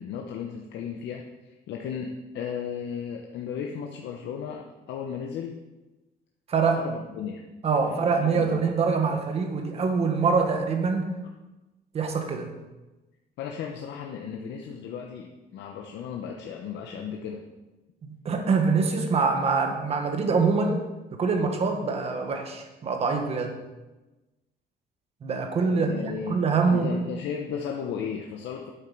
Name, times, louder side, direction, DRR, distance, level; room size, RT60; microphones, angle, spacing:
voice 1, 0.0-5.6 6.8-7.5 7.8-8.7 13.4-17.4 25.7-28.7, left 7 dB, 80° left, 1 dB, 0.9 m, -35 dB
voice 2, 6.5-6.8 7.6-11.1 11.9-12.5 18.1-23.6 25.2-27.0, right 4 dB, 35° right, 4 dB, 1.3 m, -25 dB
9.1 x 7.8 x 5.4 m, 1.1 s
cardioid pair, 175°, 18 cm